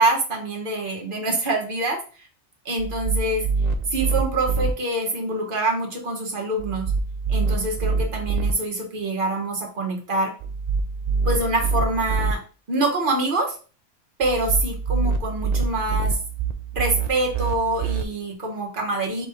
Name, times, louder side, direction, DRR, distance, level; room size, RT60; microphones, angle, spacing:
voice 1, 0.0-2.0 2.6-3.5 3.9-6.9 7.3-10.3 11.2-12.4 12.7-13.6 14.2-16.2 16.7-19.3, right 2 dB, 45° right, 1 dB, 1.2 m, -25 dB
sound 1, 2.8-4.7 6.6-8.5 10.4-12.3 14.2-18.0, right 4 dB, 75° right, 0.3 m, -25 dB
4.2 x 3.2 x 3.4 m, 0.38 s
omnidirectional pair, 1.3 m